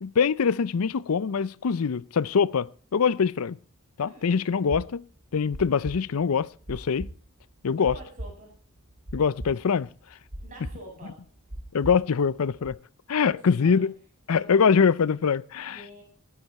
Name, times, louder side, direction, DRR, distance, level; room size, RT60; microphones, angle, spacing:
voice 1, 0.0-3.6 4.0-5.0 5.3-7.1 7.6-7.9 9.1-9.9 11.7-12.8 13.1-13.9 14.3-15.8, left 6 dB, 75° left, 0.5 m, -23 dB
voice 2, 4.0-4.4 7.8-8.6 10.4-11.3 13.3-13.9 14.3-14.7 15.6-16.0, right 1 dB, 35° right, 7.4 m, -47 dB
sound 1, 4.7-12.7, right 1 dB, 55° right, 2.3 m, -39 dB
19.0 x 9.7 x 4.2 m
head